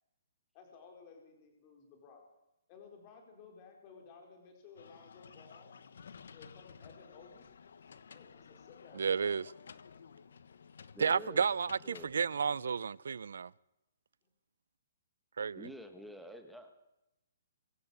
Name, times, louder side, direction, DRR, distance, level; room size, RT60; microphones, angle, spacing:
voice 1, 0.5-2.3 2.7-5.7 6.3-7.5 8.1-9.4 15.9-16.2, left 5 dB, 20° left, 4.5 m, -56 dB
sound 1, 4.8-12.8, left 6 dB, 70° left, 1.3 m, -55 dB
voice 2, 8.9-9.5 11.0-13.5 15.4-15.7, right 6 dB, 75° right, 0.7 m, -32 dB
voice 3, 10.9-11.4 11.8-12.1 15.5-16.7, equal, ahead, 1.5 m, -48 dB
24.0 x 14.5 x 8.3 m
hypercardioid pair, 175°, 0 cm